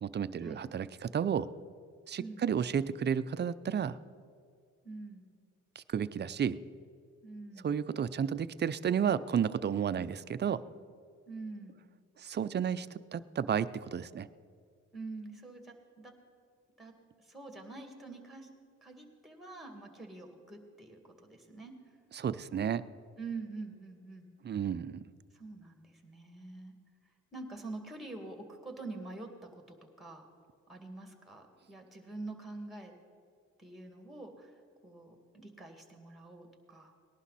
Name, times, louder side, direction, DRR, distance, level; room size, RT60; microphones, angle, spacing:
voice 1, 0.0-1.5 2.1-4.0 5.8-6.6 7.6-10.6 12.2-14.3 22.1-22.8 24.4-25.0, right 8 dB, 35° right, 14 dB, 0.5 m, -32 dB
voice 2, 4.8-5.3 7.2-7.8 11.3-11.8 14.9-16.1 16.8-16.9 17.2-18.5 18.8-21.7 23.2-24.3 25.3-26.7 27.3-30.3 30.7-32.9 33.6-34.5 34.8-36.9, right 3 dB, ahead, 4 dB, 2.3 m, -46 dB
19.0 x 11.5 x 4.2 m, 2.2 s
cardioid pair, 90°, 30 cm